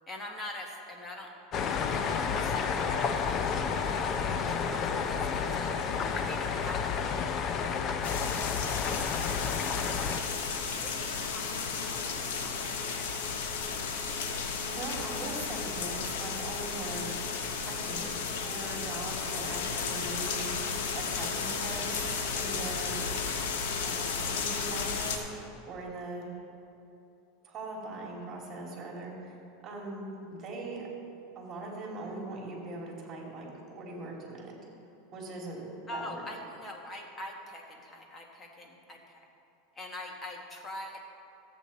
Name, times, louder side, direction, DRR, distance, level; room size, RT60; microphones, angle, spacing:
voice 1, 0.1-1.3 1.7-7.4 8.9-13.6 14.1-14.4 14.9-15.1 35.9-39.3 39.7-41.0, left 1 dB, 20° left, 1 dB, 1.4 m, -45 dB
sound 1, 1.5-10.2, left 6 dB, 35° left, 0.6 m, -31 dB
sound 2, 8.0-25.2, left 5 dB, 80° left, 1.1 m, -33 dB
voice 2, 14.3-17.2 17.6-20.5 20.9-23.1 23.8-26.3 27.4-29.4 29.6-30.9 31.3-34.5 35.1-35.6 35.9-36.2, right 2 dB, 30° right, -1 dB, 2.6 m, -41 dB
13.0 x 8.4 x 4.1 m, 2.8 s
supercardioid pair, 135°, 0 cm